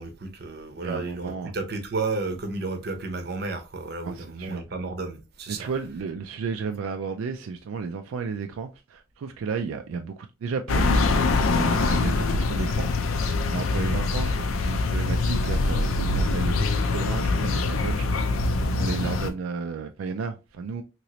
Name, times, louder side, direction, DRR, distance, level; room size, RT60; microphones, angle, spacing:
voice 1, 0.0-5.7 13.8-14.0 19.0-19.1, right 3 dB, 50° right, 0.7 m, -32 dB
voice 2, 0.8-1.5 4.0-4.6 5.5-11.0 11.5-12.9 13.5-18.1 18.8-20.8, right 5 dB, 80° right, 0.3 m, -33 dB
sound 1, 10.7-19.3, left 3 dB, 80° left, 0.4 m, -24 dB
3.0 x 2.9 x 2.8 m
head